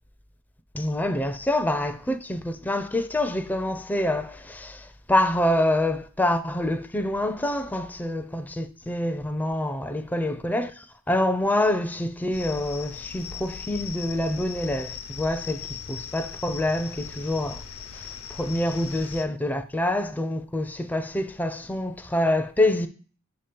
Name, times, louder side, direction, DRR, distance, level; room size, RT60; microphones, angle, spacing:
voice 1, 0.7-17.6 17.9-22.9, left 1 dB, 10° left, 0.4 m, -26 dB
sound 1, 12.3-19.2, left 7 dB, 70° left, 0.6 m, -39 dB
6.9 x 2.9 x 5.1 m
head